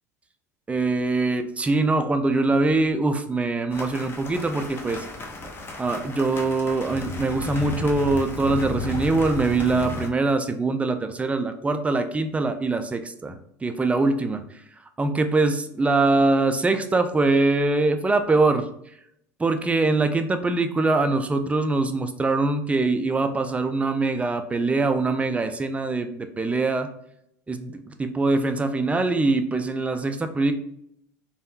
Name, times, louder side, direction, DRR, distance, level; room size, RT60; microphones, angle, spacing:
voice 1, 0.7-5.1 5.8-14.4 15.0-18.7 19.4-26.9 27.5-30.5, right 3 dB, 15° right, 8 dB, 0.4 m, -23 dB
sound 1, 3.7-10.1, left 3 dB, 25° left, 0.7 m, -34 dB
3.4 x 2.3 x 2.7 m, 0.73 s
hypercardioid pair, 80°, 9 cm